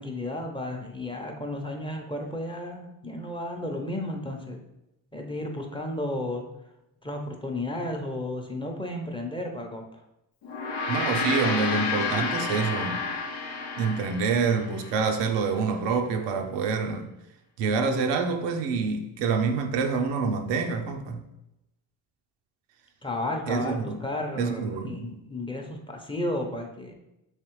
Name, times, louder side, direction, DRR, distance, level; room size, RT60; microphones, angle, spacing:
voice 1, 0.0-4.6 5.1-6.4 7.0-10.0 23.0-26.9, left 1 dB, 10° left, 0.6 m, -33 dB
Gong, 10.4-15.0, left 4 dB, 85° left, 0.7 m, -30 dB
voice 2, 10.9-13.0 13.8-17.1 17.6-21.2 23.5-24.0 24.4-25.1, right 5 dB, 80° right, 0.6 m, -27 dB
3.2 x 3.1 x 3.0 m
supercardioid pair, 60°, 42 cm